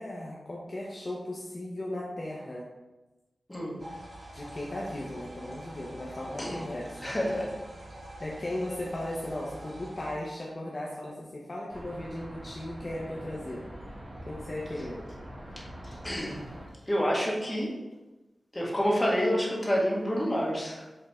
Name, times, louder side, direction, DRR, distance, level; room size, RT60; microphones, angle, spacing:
voice 1, 0.0-2.7 4.3-7.1 8.2-13.6 14.3-15.0, left 1 dB, 40° left, -4 dB, 0.9 m, -37 dB
sound 1, 3.8-10.1, right 1 dB, 65° right, 1.6 m, -45 dB
voice 2, 7.0-7.5 15.5-16.5 16.9-17.7 18.5-20.9, equal, 20° left, -4 dB, 1.7 m, -28 dB
sound 2, 11.7-16.7, equal, 35° right, 1.8 m, -44 dB
7.0 x 3.7 x 3.7 m, 1.1 s
wide cardioid pair, 80°, 0 cm